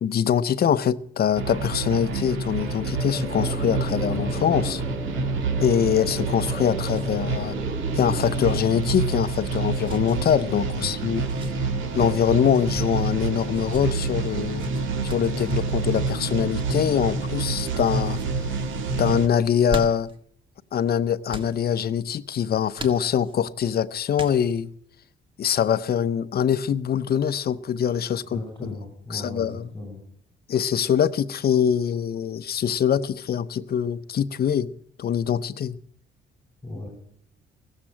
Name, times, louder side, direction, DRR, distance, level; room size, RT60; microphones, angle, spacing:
voice 1, 0.0-4.8 5.6-7.5 7.9-11.2 11.9-14.7 15.0-18.2 19.0-20.1 20.7-24.7 25.4-28.7 29.1-29.7 30.5-34.7 35.0-35.8, left 8 dB, 50° left, 0.7 m, -23 dB
sound 1, 1.3-19.3, right 3 dB, 75° right, 1.9 m, -28 dB
sound 2, 2.4-13.5, equal, 10° right, 1.9 m, -38 dB
sound 3, 6.3-7.1 7.4-7.5 8.4-8.7 9.8-10.2 11.1-11.6 12.4-12.9 13.5-13.8 14.6-15.3 16.5-16.8 17.5-17.8 18.1-18.3 19.4-20.2 21.3-21.5 22.8-23.4 24.1-24.7, right 1 dB, 25° right, 1.8 m, -38 dB
voice 2, 10.8-11.2 28.3-30.0 36.6-36.9, left 2 dB, 10° left, 5.6 m, -36 dB
17.0 x 7.5 x 8.8 m
cardioid pair, 90°, 20 cm